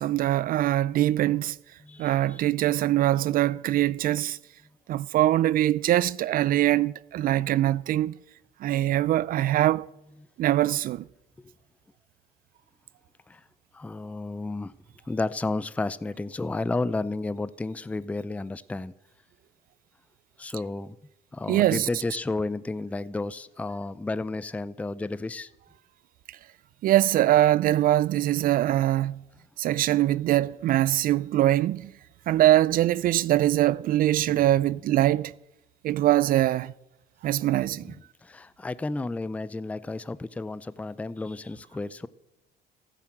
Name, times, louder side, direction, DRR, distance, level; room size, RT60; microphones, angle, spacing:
voice 1, 0.0-1.6 2.0-4.4 4.9-8.1 8.6-9.9 10.4-11.0 21.5-21.9 26.8-29.2 29.6-31.9 32.3-35.3 35.8-36.7 37.2-37.9, right 14 dB, 55° right, 0.4 m, -23 dB
voice 2, 1.8-2.4 11.4-11.5 13.3-13.4 13.7-14.7 15.1-18.9 20.4-21.0 21.3-25.5 34.3-34.4 37.8-42.1, left 3 dB, 10° left, 0.4 m, -32 dB
14.5 x 9.0 x 7.4 m
cardioid pair, 110°, 17 cm